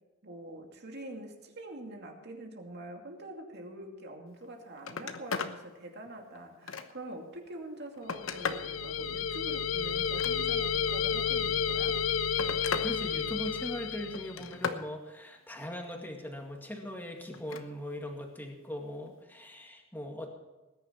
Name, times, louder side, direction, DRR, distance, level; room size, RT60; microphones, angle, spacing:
voice 1, 0.2-12.0, right 1 dB, 55° right, 2 dB, 2.5 m, -45 dB
Telephone, 4.3-4.5 4.8-5.6 6.1-7.1 7.7-8.7 10.0-10.8 11.8-12.9 13.3-13.7 14.1-14.9 17.3-17.7 19.1-19.2, left 5 dB, 75° left, 1.0 m, -37 dB
sound 1, 8.1-14.5, left 7 dB, 90° left, 0.7 m, -31 dB
voice 2, 12.8-20.3, left 1 dB, 10° left, 2 dB, 2.0 m, -40 dB
19.5 x 10.5 x 4.5 m, 1.1 s
head